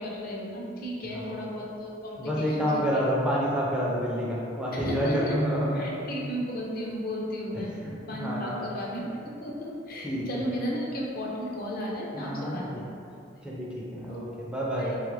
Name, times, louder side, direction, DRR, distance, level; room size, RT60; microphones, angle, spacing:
voice 1, 0.0-2.8 4.7-5.4 5.7-7.7 8.1-12.9 14.1-14.2 14.8-15.0, equal, 50° left, -3 dB, 0.5 m, -34 dB
voice 2, 2.2-5.9 7.5-8.7 10.0-10.2 12.1-12.6 13.4-14.9, equal, 5° right, -6 dB, 0.3 m, -29 dB
3.2 x 2.4 x 3.1 m, 2.5 s
head